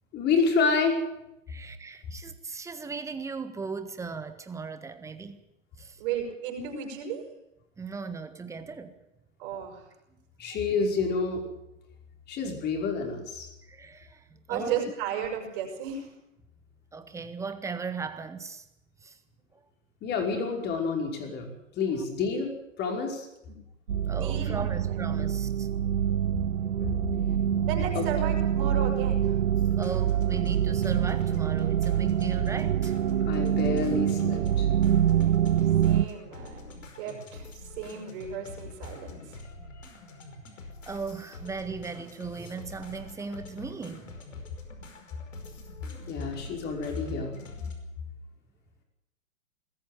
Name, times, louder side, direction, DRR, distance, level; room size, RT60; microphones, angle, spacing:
voice 1, 0.1-1.0 10.4-11.4 12.3-13.5 20.0-22.5 22.8-23.3 26.8-27.0 28.0-28.1 33.2-34.7 46.0-47.4, left 4 dB, 25° left, 5.3 m, -28 dB
voice 2, 1.5-5.4 5.8-6.0 7.8-8.9 13.6-14.8 16.9-18.7 19.0-19.2 24.1-25.7 29.8-32.9 40.9-44.1, right 5 dB, 5° right, 1.6 m, -37 dB
voice 3, 6.0-7.2 9.4-9.8 14.5-16.1 23.5-23.6 24.0-25.0 27.6-29.3 35.8-39.4, right 7 dB, 40° right, 6.3 m, -35 dB
sound 1, 23.9-36.1, right 9 dB, 70° right, 0.8 m, -25 dB
sound 2, 29.6-47.7, left 2 dB, 70° left, 5.2 m, -46 dB
20.5 x 14.0 x 9.4 m
hypercardioid pair, 120°, 39 cm